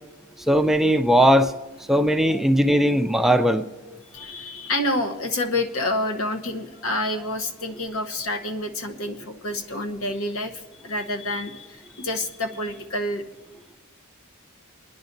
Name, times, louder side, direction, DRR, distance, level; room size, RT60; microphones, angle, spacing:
voice 1, 0.5-1.5 1.9-3.7, equal, ahead, 7 dB, 0.3 m, -18 dB
voice 2, 3.9-13.2, left 1 dB, 75° left, 6 dB, 0.9 m, -28 dB
27.0 x 10.5 x 2.6 m, 1.1 s
head